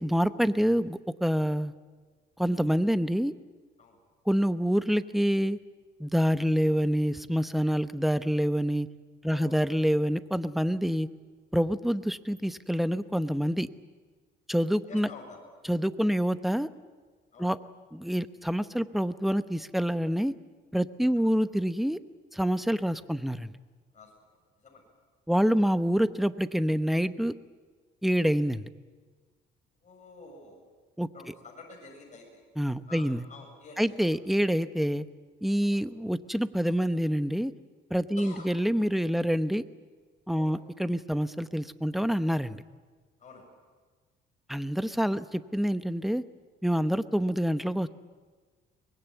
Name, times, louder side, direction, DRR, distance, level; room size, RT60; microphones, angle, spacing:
voice 1, 0.0-1.7 2.4-3.3 4.3-5.6 6.0-8.9 9.2-11.1 11.5-13.7 14.5-15.1 15.7-16.7 17.4-17.6 17.9-20.3 20.7-22.0 22.3-23.5 25.3-27.3 28.0-28.7 31.0-31.1 32.6-33.2 33.8-35.1 35.4-37.5 37.9-39.6 40.3-42.6 44.5-46.2 46.6-47.9, equal, ahead, 12 dB, 0.9 m, -27 dB
voice 2, 14.9-15.4 16.0-16.1 17.3-17.5 21.2-21.3 23.9-24.1 24.6-24.8 29.8-30.6 31.1-32.4 32.9-34.2 35.6-35.8 38.2-38.5 40.3-40.6 43.2-43.5, left 3 dB, 40° left, 0 dB, 7.0 m, -48 dB
24.0 x 21.0 x 9.2 m, 1.4 s
cardioid pair, 100°, 19 cm